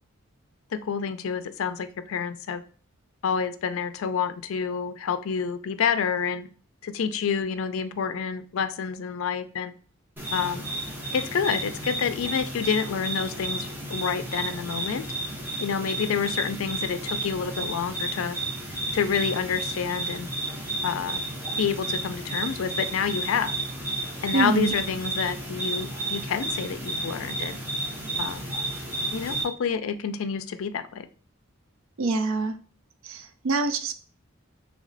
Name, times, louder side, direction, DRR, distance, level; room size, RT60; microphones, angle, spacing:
voice 1, 0.8-2.6 3.2-6.5 6.8-9.7 10.3-10.7 11.1-15.1 15.6-18.4 18.9-20.3 20.8-21.2 21.6-23.6 24.2-27.6 28.2-28.4 29.1-31.1, left 6 dB, 75° left, 11 dB, 0.4 m, -28 dB
sound 1, 10.2-29.4, right 2 dB, 10° right, 0.9 m, -32 dB
voice 2, 24.3-24.7 32.0-32.5 33.0-33.9, right 4 dB, 75° right, 8 dB, 0.5 m, -25 dB
3.3 x 3.1 x 3.9 m, 0.41 s
head